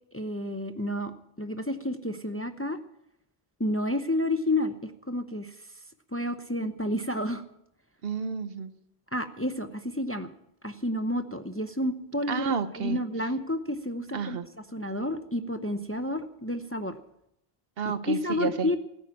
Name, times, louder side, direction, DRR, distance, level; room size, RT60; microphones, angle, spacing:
voice 1, 0.1-2.8 3.6-5.5 6.1-7.4 9.1-10.3 10.6-12.5 12.8-14.4 14.7-17.0 18.1-18.8, left 1 dB, 15° left, 8 dB, 0.8 m, -30 dB
voice 2, 8.0-8.7 12.3-13.0 14.1-14.5 17.8-18.7, right 6 dB, 70° right, 12 dB, 1.1 m, -30 dB
15.5 x 8.8 x 8.6 m, 0.79 s
omnidirectional pair, 1.0 m